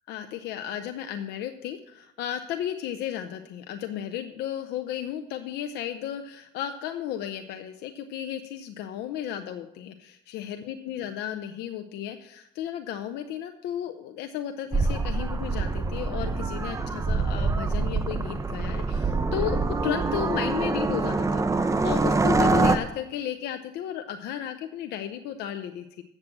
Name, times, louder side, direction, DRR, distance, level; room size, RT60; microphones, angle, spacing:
voice 1, 0.1-25.8, left 10 dB, 80° left, 7 dB, 0.7 m, -34 dB
sound 1, 14.7-22.8, right 3 dB, 20° right, 0.6 m, -25 dB
7.5 x 7.5 x 7.7 m, 0.84 s
cardioid pair, 110°, 17 cm